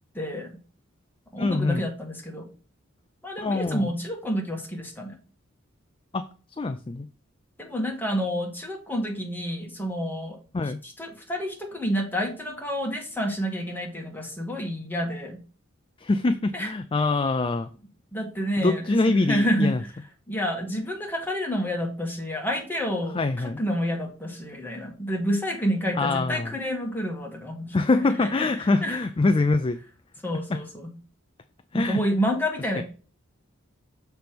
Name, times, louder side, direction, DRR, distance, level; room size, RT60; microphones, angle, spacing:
voice 1, 0.1-0.5 1.3-2.5 3.2-5.2 7.6-15.4 16.5-16.7 18.1-19.7 20.3-29.0 30.2-30.9 31.7-32.8, equal, 10° left, 0 dB, 1.7 m, -29 dB
voice 2, 1.4-1.9 3.4-3.9 6.1-6.2 6.6-7.1 10.5-10.8 16.0-17.7 18.6-19.8 23.1-23.6 26.0-26.5 27.7-29.8 30.5-30.6 31.7-32.0 32.8-32.9, left 3 dB, 25° left, 10 dB, 0.4 m, -24 dB
6.9 x 3.4 x 6.0 m, 0.38 s
head